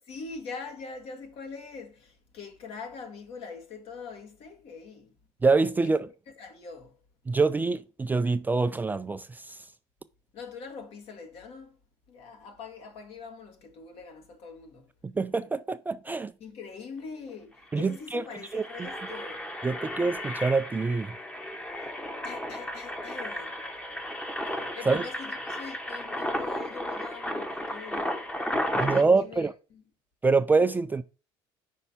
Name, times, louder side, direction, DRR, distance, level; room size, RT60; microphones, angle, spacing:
voice 1, 0.1-5.1 5.8-5.9 6.4-6.9 10.3-11.8 12.1-14.9 16.4-19.4 22.2-23.6 24.5-28.3 28.7-29.8, left 5 dB, 60° left, 1.6 m, -43 dB
voice 2, 5.4-6.1 7.3-9.6 15.2-16.3 17.7-18.2 18.5-18.9 19.6-21.1 24.9-25.1 28.7-29.5 30.2-31.0, right 4 dB, 15° right, 0.3 m, -25 dB
Engine, 17.3-17.4 17.6-17.8 18.3-29.0, left 1 dB, 10° left, 0.9 m, -34 dB
5.4 x 4.5 x 4.0 m
supercardioid pair, 100°, 11 cm